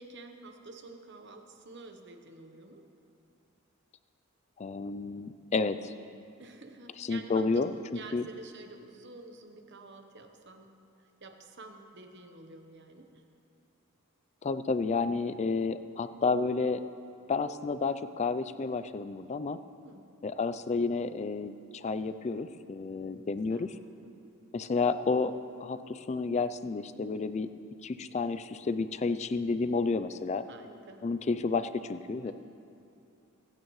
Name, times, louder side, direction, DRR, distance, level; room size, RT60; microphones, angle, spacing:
voice 1, 0.0-2.8 6.4-10.7 11.0-13.2 19.8-20.1 23.5-23.7 24.0-24.3 30.5-31.0 32.2-32.3, right 3 dB, 50° right, 5 dB, 1.0 m, -49 dB
voice 2, 4.6-5.9 7.0-7.7 8.1-8.3 14.4-16.8 17.3-19.6 20.2-23.7 24.5-25.3 25.6-27.5 27.8-30.4 31.0-32.3, left 4 dB, 30° left, 12 dB, 0.3 m, -31 dB
24.0 x 9.2 x 3.1 m, 2.6 s
head